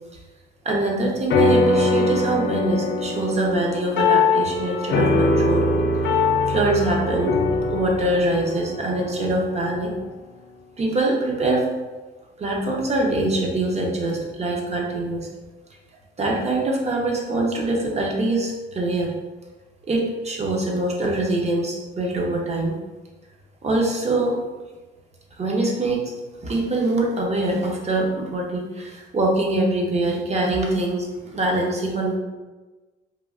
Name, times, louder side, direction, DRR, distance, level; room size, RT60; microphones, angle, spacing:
voice 1, 0.6-5.7 6.5-7.4 7.7-9.9 10.8-11.7 12.4-15.3 16.2-19.1 19.9-22.8 23.6-24.4 25.3-26.1 26.4-32.2, right 2 dB, 35° right, -1 dB, 0.6 m, -23 dB
sound 1, 1.3-10.0, left 3 dB, 65° left, 0.4 m, -22 dB
3.0 x 2.3 x 2.4 m, 1.2 s
cardioid pair, 90°, 20 cm